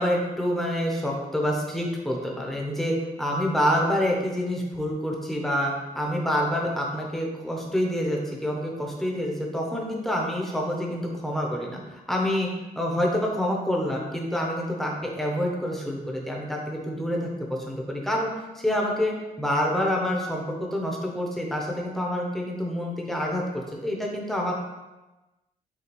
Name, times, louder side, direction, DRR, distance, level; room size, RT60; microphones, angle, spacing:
voice 1, 0.0-12.5 12.8-24.5, equal, ahead, -1 dB, 0.6 m, -27 dB
6.6 x 2.3 x 2.9 m, 1.1 s
wide cardioid pair, 175°, 15 cm